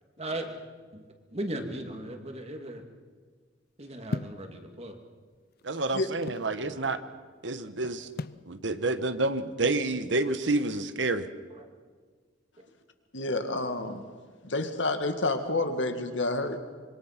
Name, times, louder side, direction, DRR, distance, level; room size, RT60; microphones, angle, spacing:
voice 1, 0.2-0.6 0.9-2.8 3.8-5.0 6.6-6.9 11.5-11.7, right 1 dB, 35° right, 4 dB, 2.5 m, -37 dB
sound 1, 4.1-4.5 5.3-6.5 8.2-8.5, left 3 dB, 55° left, 0.6 m, -35 dB
voice 2, 5.6-7.0 7.4-8.1 8.5-11.3, right 2 dB, 70° right, 11 dB, 1.3 m, -29 dB
voice 3, 13.1-14.0 14.4-16.6, left 2 dB, 70° left, 7 dB, 2.0 m, -29 dB
26.0 x 23.0 x 6.0 m, 1.6 s
head